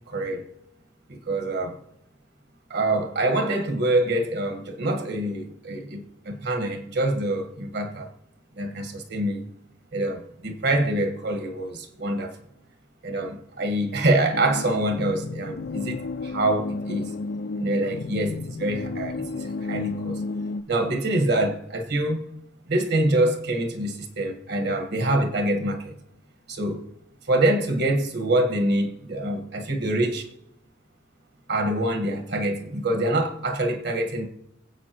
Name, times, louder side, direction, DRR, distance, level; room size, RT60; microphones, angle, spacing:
voice 1, 0.1-0.5 1.1-1.8 2.7-8.1 8.6-9.5 9.9-12.4 13.0-17.1 17.6-20.2 20.7-22.4 22.7-26.0 26.5-26.8 27.3-30.3 31.5-34.3, right 1 dB, 60° right, 1.4 m, -25 dB
sound 1, 14.3-20.6, left 3 dB, 55° left, 0.4 m, -32 dB
24.0 x 8.2 x 2.9 m
head